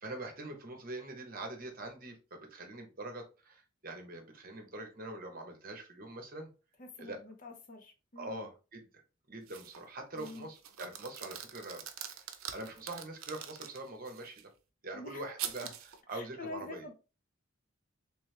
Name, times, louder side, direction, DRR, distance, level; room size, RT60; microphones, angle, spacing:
voice 1, 0.0-6.5 7.0-7.2 8.2-8.9 9.3-11.8 12.5-14.4 14.8-15.7 16.1-16.8, right 2 dB, 45° right, 1.0 m, -43 dB
voice 2, 6.8-8.5 10.1-10.5 14.9-15.3 16.1-16.9, left 3 dB, 40° left, 0.6 m, -47 dB
sound 1, 9.5-9.8 10.2-14.4 15.4-16.0, right 9 dB, 80° right, 0.5 m, -44 dB
3.4 x 3.2 x 3.2 m
head